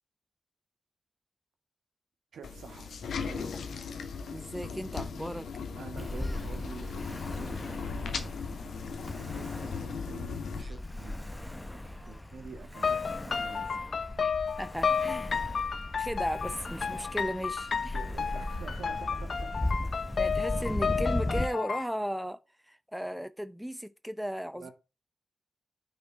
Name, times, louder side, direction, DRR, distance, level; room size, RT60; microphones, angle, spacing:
voice 1, 2.3-3.7 5.8-8.4 9.0-13.0 13.2-13.8 17.9-19.9 24.5-24.7, right 5 dB, 85° right, 1.3 m, -48 dB
sound 1, 2.4-10.6, left 5 dB, 80° left, 1.0 m, -38 dB
voice 2, 4.3-5.5 14.2-14.3 14.6-15.3 15.9-18.0 20.2-22.4 22.6-24.7, equal, ahead, 0.6 m, -36 dB
Ocean, 6.0-21.5, left 1 dB, 20° left, 0.9 m, -37 dB
sound 2, 12.7-21.9, left 6 dB, 60° left, 0.5 m, -32 dB
9.1 x 4.3 x 4.6 m
cardioid pair, 50°, 0 cm